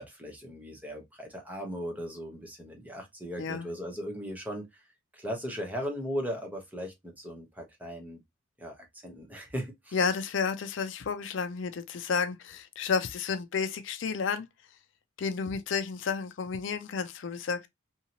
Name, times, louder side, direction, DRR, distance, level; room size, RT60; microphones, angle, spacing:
voice 1, 0.0-4.6 5.1-8.2 8.6-10.0, equal, 10° right, 0.7 m, -38 dB
voice 2, 9.9-14.5 15.2-17.7, left 5 dB, 65° left, 0.4 m, -31 dB
2.7 x 2.7 x 2.7 m
head